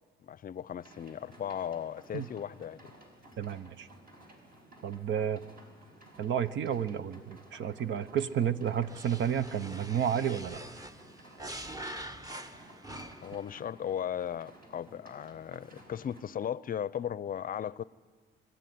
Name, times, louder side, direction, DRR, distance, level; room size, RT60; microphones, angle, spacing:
voice 1, 0.2-2.9 13.2-17.8, left 9 dB, 45° left, 0.5 m, -36 dB
sound 1, 0.8-16.2, right 1 dB, 50° right, 5.4 m, -55 dB
voice 2, 3.4-3.9 4.8-5.4 6.2-10.6, right 9 dB, 70° right, 0.9 m, -31 dB
sound 2, 8.9-13.4, right 1 dB, 20° right, 1.1 m, -44 dB
24.0 x 13.0 x 9.4 m
cardioid pair, 90°, 20 cm